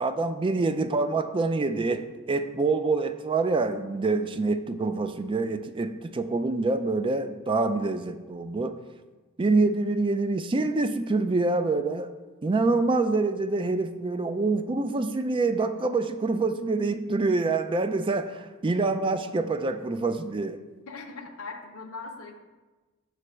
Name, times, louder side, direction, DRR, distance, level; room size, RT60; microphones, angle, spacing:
voice 1, 0.0-8.8 9.4-12.1 12.4-20.6, right 3 dB, 25° right, 10 dB, 0.3 m, -26 dB
voice 2, 20.9-22.3, left 3 dB, 65° left, 2 dB, 0.7 m, -40 dB
6.6 x 3.3 x 6.1 m, 1.2 s
head